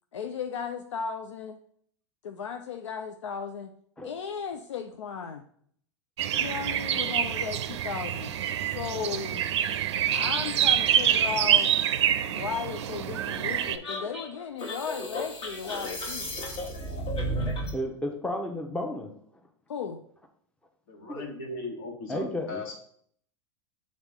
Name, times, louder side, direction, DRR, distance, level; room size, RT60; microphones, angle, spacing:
voice 1, 0.1-1.6 2.2-3.7 4.0-5.4 6.4-8.3 8.7-9.5 10.1-11.7 12.3-16.4 19.7-20.0, left 6 dB, 80° left, 6 dB, 0.5 m, -35 dB
sound 1, 6.2-13.8, right 9 dB, 70° right, 0.5 m, -26 dB
sound 2, 13.8-17.8, equal, 35° left, 1.4 m, -33 dB
voice 2, 17.7-19.1 21.1-21.3 22.1-22.6, left 1 dB, 5° left, 3 dB, 0.9 m, -32 dB
voice 3, 20.9-22.6, left 3 dB, 60° left, 0 dB, 2.0 m, -38 dB
7.1 x 3.7 x 3.6 m, 0.62 s
hypercardioid pair, 95°, 15 cm